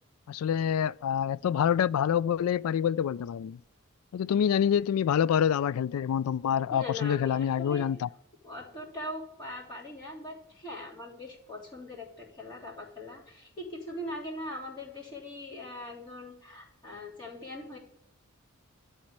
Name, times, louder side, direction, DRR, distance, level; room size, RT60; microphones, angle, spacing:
voice 1, 0.3-3.6 4.1-8.1, left 8 dB, 85° left, 0.3 m, -26 dB
voice 2, 6.7-7.9 8.4-17.8, left 1 dB, 20° left, 3.3 m, -41 dB
12.0 x 4.3 x 8.0 m
head